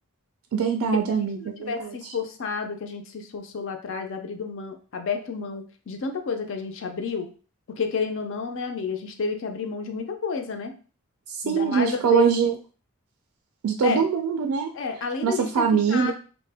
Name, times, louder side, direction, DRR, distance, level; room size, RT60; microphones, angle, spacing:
voice 1, 0.5-2.1 11.3-12.5 13.6-14.7 15.2-16.1, right 7 dB, 85° right, 4 dB, 0.3 m, -23 dB
voice 2, 1.4-7.3 7.7-10.8 11.4-12.3 13.8-14.0 14.7-16.1, left 5 dB, 60° left, 6 dB, 0.4 m, -30 dB
2.7 x 2.1 x 3.3 m, 0.38 s
head